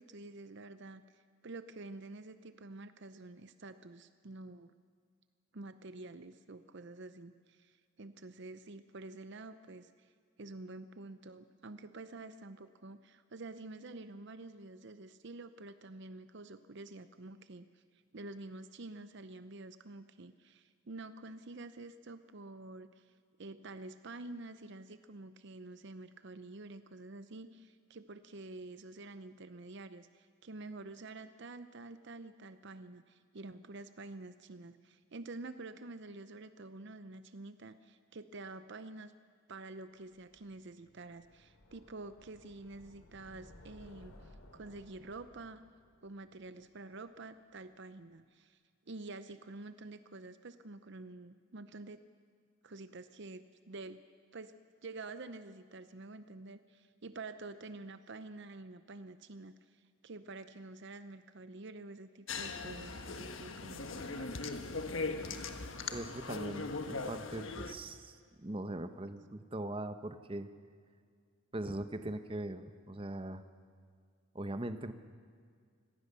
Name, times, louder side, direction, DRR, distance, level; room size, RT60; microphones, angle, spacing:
voice 1, 0.0-4.7 5.5-10.1 10.4-17.8 18.1-39.1 39.5-45.7 46.0-48.6 48.9-52.0 52.6-54.0 54.3-54.5 54.8-64.5, right 2 dB, 55° right, 12 dB, 0.7 m, -48 dB
sound 1, 40.1-47.2, left 1 dB, 90° left, 2.9 m, -59 dB
sound 2, 62.3-67.7, left 3 dB, 65° left, 1.4 m, -40 dB
voice 2, 65.9-70.5 71.5-73.4 74.3-74.9, right 1 dB, 25° right, 9 dB, 0.9 m, -41 dB
25.5 x 18.5 x 6.8 m, 2.1 s
head